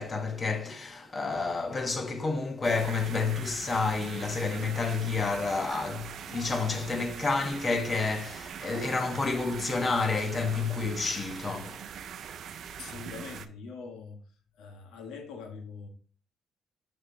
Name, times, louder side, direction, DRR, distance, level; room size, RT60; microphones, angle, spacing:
voice 1, 0.0-11.9, left 4 dB, 35° left, 1.1 m, -30 dB
sound 1, 2.6-13.5, right 8 dB, 70° right, 0.5 m, -42 dB
voice 2, 12.7-14.2 14.5-15.9, left 5 dB, 85° left, 1.3 m, -43 dB
6.5 x 5.5 x 2.8 m
cardioid pair, 90°, 0 cm